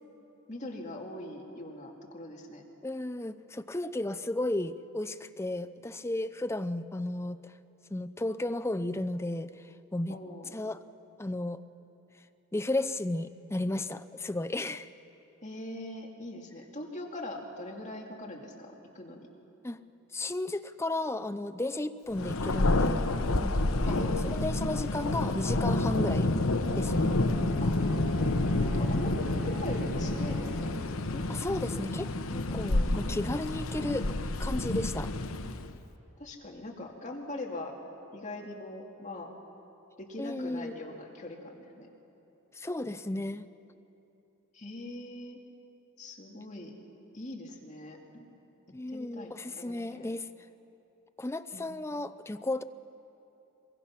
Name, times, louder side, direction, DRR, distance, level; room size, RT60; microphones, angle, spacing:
voice 1, 0.5-2.6 10.1-10.5 15.4-19.3 23.8-24.3 27.6-27.8 28.6-29.1 29.4-30.8 31.1-32.0 32.3-32.6 33.0-33.5 36.2-37.7 38.1-39.3 40.0-41.9 44.5-45.4 46.0-46.7 47.1-48.3 48.9-50.1 51.5-51.7, left 1 dB, 35° left, 0 dB, 2.4 m, -41 dB
voice 2, 2.8-7.5 7.9-10.2 10.5-10.8 11.2-11.6 12.5-14.9 19.6-19.8 20.1-23.1 23.4-23.6 23.9-26.3 26.7-27.2 31.3-32.1 32.5-34.1 34.4-35.1 40.2-40.7 42.5-43.5 48.7-50.3 51.2-52.6, left 1 dB, 10° left, 13 dB, 0.5 m, -34 dB
Thunder, 22.1-35.8, left 2 dB, 70° left, 1.0 m, -29 dB
Brass instrument, 26.5-30.8, equal, 55° right, 6.7 m, -44 dB
24.0 x 23.0 x 5.9 m, 3.0 s
head